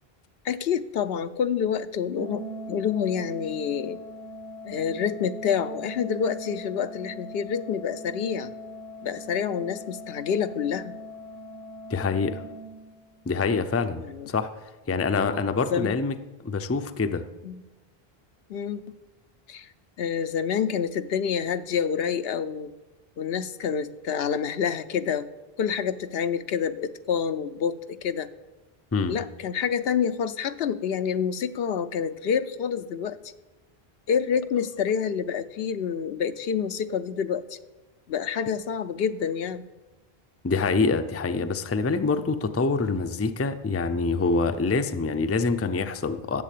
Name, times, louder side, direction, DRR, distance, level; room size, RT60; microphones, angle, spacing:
voice 1, 0.4-4.0 4.6-8.5 9.0-10.9 14.0-14.3 15.1-15.4 15.7-15.9 17.4-17.6 18.5-18.8 19.5-19.7 20.0-22.7 23.2-25.3 25.6-28.3 29.1-33.2 34.1-37.6 38.1-39.7, left 7 dB, 80° left, 12 dB, 0.8 m, -28 dB
Organ, 2.2-13.2, equal, 75° right, 1.1 m, -40 dB
voice 2, 11.9-12.4 13.3-14.5 14.9-16.2 16.4-17.2 28.9-29.2 40.4-46.4, left 4 dB, 20° left, 9 dB, 0.4 m, -25 dB
11.0 x 7.5 x 8.4 m, 1.1 s
omnidirectional pair, 1.0 m